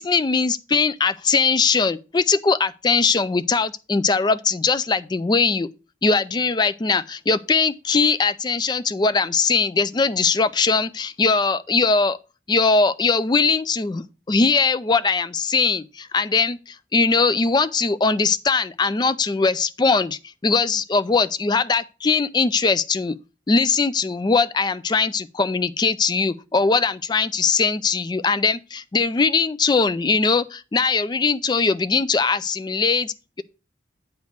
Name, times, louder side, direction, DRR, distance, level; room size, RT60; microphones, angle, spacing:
voice 1, 0.0-5.7 6.0-12.2 12.5-23.2 23.5-33.4, left 4 dB, 20° left, 0.3 m, -21 dB
9.2 x 3.4 x 6.4 m
head